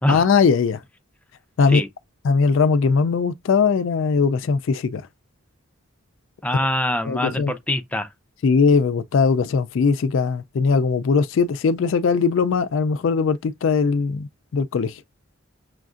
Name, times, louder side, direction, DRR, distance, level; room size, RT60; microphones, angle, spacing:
voice 1, 0.1-0.8 1.6-1.8 2.2-5.0 7.0-7.5 8.4-15.0, left 5 dB, 65° left, 0.3 m, -20 dB
voice 2, 6.4-8.1, left 1 dB, 5° left, 0.5 m, -24 dB
6.2 x 2.5 x 2.4 m
head